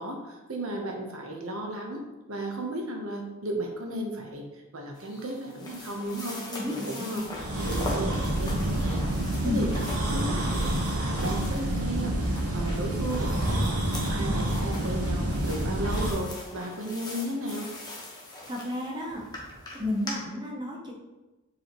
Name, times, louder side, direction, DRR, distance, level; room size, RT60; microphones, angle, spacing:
voice 1, 0.0-2.0 2.3-4.4 4.7-7.3 7.6-9.0 9.4-13.6 13.8-17.7, right 1 dB, 70° right, 2 dB, 1.1 m, -35 dB
sound 1, 4.9-20.1, left 2 dB, 20° left, 1.3 m, -41 dB
voice 2, 6.5-7.2 9.4-9.7 18.5-19.5 19.7-20.9, left 1 dB, 20° right, -2 dB, 0.9 m, -32 dB
sound 2, 7.2-16.1, right 1 dB, 85° right, 1.3 m, -28 dB
6.9 x 5.0 x 3.1 m, 1.1 s
head